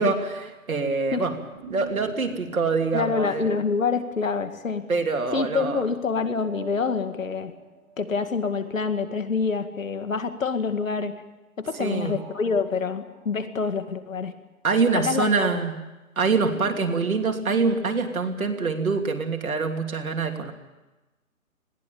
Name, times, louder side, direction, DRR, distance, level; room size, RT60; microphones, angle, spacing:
voice 1, 0.0-1.4 1.7-3.6 4.9-5.8 11.8-12.1 14.6-15.8 16.2-20.5, right 4 dB, 70° right, 4 dB, 3.1 m, -25 dB
sound 1, 1.4-4.8 6.2-9.0 11.6-14.2 16.3-19.1, right 5 dB, 25° right, 2.5 m, -47 dB
voice 2, 2.9-4.8 5.3-7.5 8.0-11.1 11.6-14.3 14.9-15.3, left 5 dB, 65° left, 9 dB, 2.2 m, -26 dB
20.5 x 16.5 x 8.7 m, 1.1 s
hypercardioid pair, 165°, 43 cm